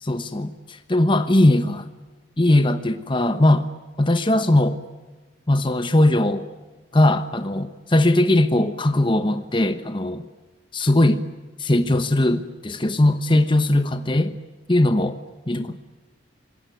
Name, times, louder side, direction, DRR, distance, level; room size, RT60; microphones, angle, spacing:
voice 1, 0.0-1.9 2.4-3.7 4.0-4.8 5.5-6.5 6.9-10.2 10.7-11.2 11.6-14.4 14.7-15.2 15.5-15.8, left 1 dB, 25° left, 1.1 m, -19 dB
27.0 x 20.0 x 9.2 m
head